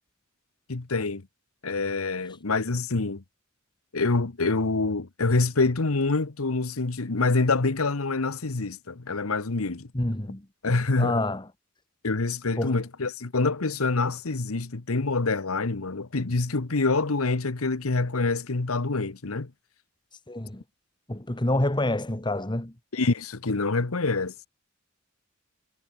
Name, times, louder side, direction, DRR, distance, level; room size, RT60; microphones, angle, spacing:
voice 1, 0.7-1.2 1.6-3.2 3.9-9.9 10.6-11.2 12.0-19.5 22.9-24.5, left 3 dB, 85° left, 1.2 m, -26 dB
voice 2, 9.9-10.5 11.0-11.5 12.6-12.8 20.1-20.6 21.1-22.7, left 1 dB, 20° left, 1.6 m, -27 dB
head